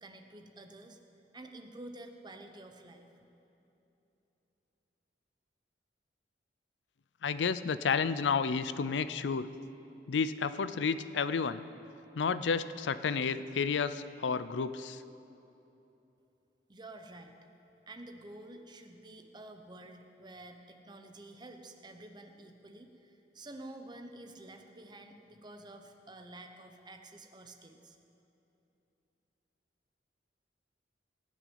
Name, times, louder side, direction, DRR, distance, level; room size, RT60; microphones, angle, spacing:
voice 1, 0.0-1.0 1.3-3.0 16.7-17.3 17.9-28.0, right 1 dB, 25° right, 5 dB, 0.9 m, -50 dB
voice 2, 7.2-9.5 10.1-11.6 12.2-15.0, left 5 dB, 90° left, 14 dB, 0.5 m, -31 dB
17.5 x 6.1 x 9.2 m, 3.0 s
head